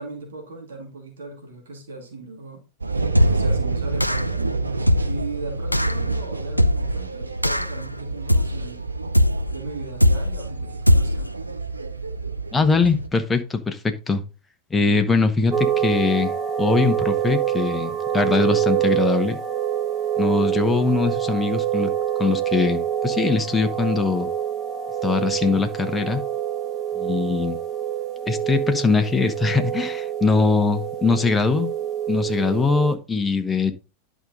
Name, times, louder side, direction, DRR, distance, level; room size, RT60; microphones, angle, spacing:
voice 1, 0.0-2.6 3.3-4.5 5.0-8.8 9.5-11.3, right 3 dB, 65° right, 2.6 m, -37 dB
sound 1, 2.8-13.1, right 3 dB, 80° right, 0.8 m, -28 dB
sound 2, 3.1-3.6 4.0-4.4 4.9-5.3 5.7-6.0 6.6-7.0 7.4-7.8 8.3-8.7 9.1-9.6 10.0-10.4 10.9-11.3, left 1 dB, 90° left, 0.4 m, -20 dB
voice 2, 12.5-14.2 14.7-19.4 20.2-21.9 22.2-24.3 25.0-26.2 27.0-27.6 28.3-31.7 32.1-33.7, left 4 dB, 10° left, 1.0 m, -22 dB
sound 3, 15.5-33.0, right 10 dB, 30° right, 1.5 m, -26 dB
11.0 x 5.1 x 4.0 m
figure-of-eight pair, 90°, 0 cm